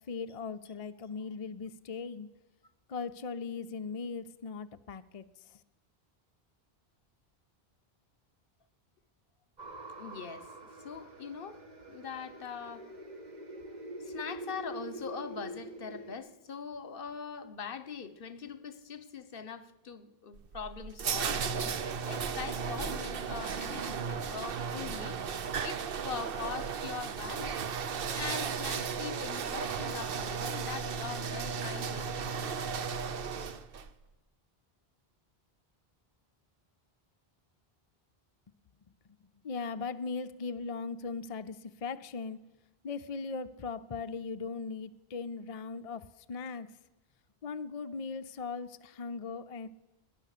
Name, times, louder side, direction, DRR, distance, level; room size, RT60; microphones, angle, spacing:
voice 1, 0.1-2.3 2.9-5.6 39.4-42.4 42.8-46.7 47.4-49.7, left 4 dB, 45° left, 0.5 m, -39 dB
sound 1, 9.6-16.2, right 1 dB, 45° right, 1.6 m, -45 dB
voice 2, 10.0-10.5 10.8-11.6 11.9-12.9 14.0-21.7 22.1-25.2 25.6-27.6 28.1-32.4, left 6 dB, 60° left, 1.1 m, -42 dB
sound 2, 20.3-33.9, right 6 dB, 65° right, 0.9 m, -35 dB
17.5 x 10.5 x 6.7 m
omnidirectional pair, 1.0 m